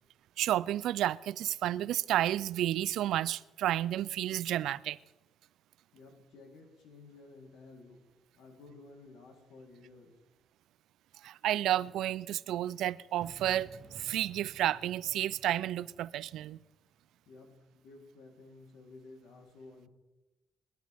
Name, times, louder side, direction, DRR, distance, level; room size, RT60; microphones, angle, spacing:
voice 1, 0.4-5.0 11.2-16.6, right 13 dB, 85° right, 0.4 m, -31 dB
voice 2, 5.9-8.0 8.3-10.1 17.2-19.9, left 3 dB, 85° left, 3.4 m, -54 dB
sound 1, 13.2-17.1, right 5 dB, 55° right, 1.3 m, -54 dB
21.0 x 12.5 x 3.5 m
cardioid pair, 90°, 0 cm